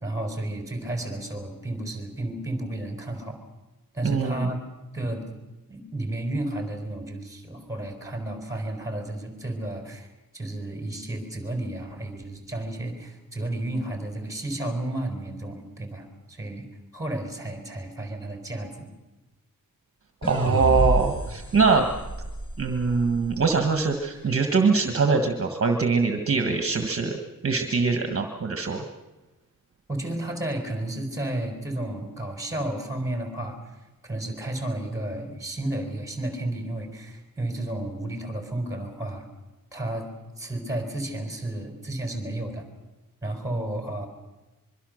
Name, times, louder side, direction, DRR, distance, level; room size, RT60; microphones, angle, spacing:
voice 1, 0.0-3.4 3.9-4.6 4.9-5.3 5.7-10.1 10.3-16.7 16.9-18.9 29.9-33.6 34.1-39.3 39.7-40.1 40.4-42.6 43.2-44.1, right 1 dB, 10° right, 4 dB, 4.3 m, -32 dB
voice 2, 4.0-4.5 20.3-21.9 22.6-27.1 27.4-28.8, right 4 dB, 40° right, 5 dB, 1.5 m, -23 dB
sound 1, 20.2-23.5, right 2 dB, 15° left, 2.8 m, -29 dB
24.5 x 23.0 x 6.5 m, 1.1 s
wide cardioid pair, 170°, 34 cm